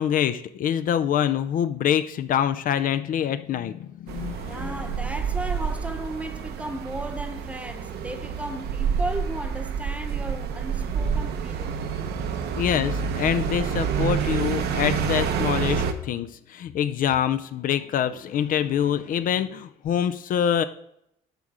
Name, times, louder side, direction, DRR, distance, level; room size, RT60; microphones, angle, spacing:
voice 1, 0.0-4.7 12.6-20.6, left 9 dB, 55° left, 0.5 m, -25 dB
sound 1, 4.1-15.9, right 7 dB, 75° right, 0.9 m, -28 dB
voice 2, 4.5-11.8, right 1 dB, 10° right, 0.8 m, -35 dB
10.5 x 3.6 x 6.1 m
cardioid pair, 110°, 17 cm